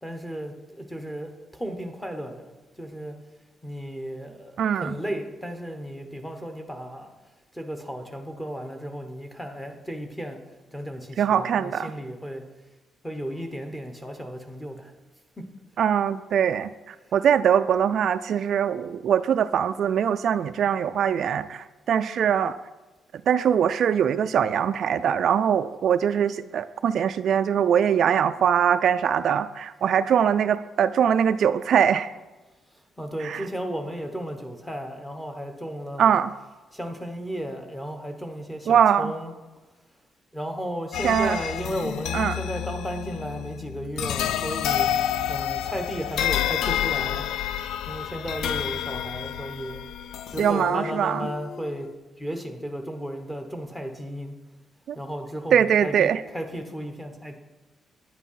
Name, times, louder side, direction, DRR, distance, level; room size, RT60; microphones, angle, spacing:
voice 1, 0.0-2.5 2.8-3.1 3.6-7.1 7.5-10.4 10.7-12.4 13.0-14.9 15.4-15.5 33.0-36.1 36.7-39.3 40.3-44.9 45.3-47.3 47.9-49.8 50.3-51.9 52.2-54.3 54.9-57.4, equal, 5° left, 4 dB, 1.1 m, -34 dB
voice 2, 4.6-4.9 11.2-11.9 15.8-22.6 23.3-32.1 33.2-33.5 36.0-36.3 38.7-39.1 41.0-41.4 42.1-42.4 50.4-51.3 54.9-55.0 55.5-56.2, right 8 dB, 50° right, 11 dB, 0.3 m, -22 dB
sound 1, 40.9-51.9, left 10 dB, 80° left, 0.4 m, -29 dB
10.0 x 9.2 x 5.7 m, 1.1 s
cardioid pair, 175°, 0 cm